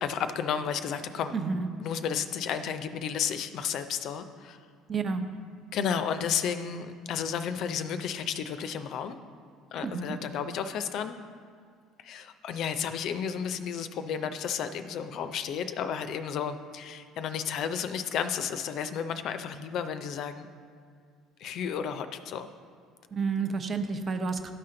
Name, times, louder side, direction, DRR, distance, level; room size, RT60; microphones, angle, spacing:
voice 1, 0.0-1.3 1.8-4.6 5.7-9.2 9.7-11.1 12.0-20.5 21.4-22.5, left 7 dB, 60° left, 9 dB, 0.5 m, -32 dB
voice 2, 1.3-1.7 4.9-5.2 9.8-10.2 23.1-24.5, right 4 dB, 40° right, 7 dB, 0.7 m, -30 dB
12.0 x 4.3 x 3.8 m, 2.1 s
hypercardioid pair, 75°, 0 cm